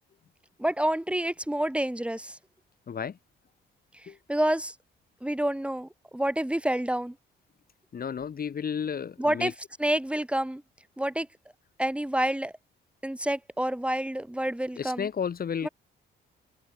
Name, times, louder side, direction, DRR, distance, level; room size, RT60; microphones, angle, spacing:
voice 1, 0.6-2.4 4.0-4.7 5.2-7.1 9.2-9.5 9.8-10.6 11.0-11.3 11.8-12.5 13.0-15.1 15.6-15.7, right 1 dB, 5° right, 6.8 m, -28 dB
voice 2, 2.9-3.2 4.1-4.2 7.9-9.5 14.8-15.7, left 7 dB, 50° left, 3.7 m, -32 dB
open air
cardioid pair, 90°, 20 cm